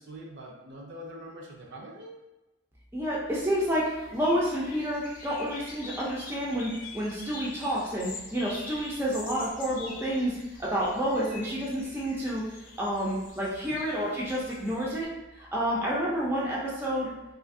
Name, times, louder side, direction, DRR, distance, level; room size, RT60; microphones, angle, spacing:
voice 1, 0.0-2.3 13.7-13.8, equal, 55° right, -1 dB, 0.6 m, -44 dB
voice 2, 2.9-12.4 12.8-15.1 15.3-17.1, equal, 10° right, -6 dB, 0.4 m, -29 dB
sound 1, 3.3-15.0, left 3 dB, 40° left, 0.5 m, -45 dB
2.7 x 2.5 x 2.6 m, 1.0 s
head